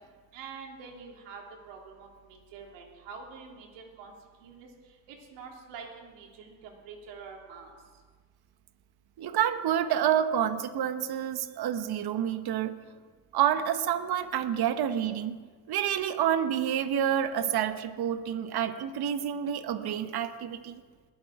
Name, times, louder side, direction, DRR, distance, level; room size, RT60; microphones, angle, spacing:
voice 1, 0.3-4.1 4.4-4.7 5.1-7.8, right 5 dB, 85° right, 1 dB, 2.7 m, -46 dB
voice 2, 9.2-12.8 13.3-15.4 15.7-20.8, right 10 dB, 60° right, 10 dB, 1.2 m, -28 dB
21.0 x 7.6 x 4.8 m, 1.4 s
supercardioid pair, 65°, 43 cm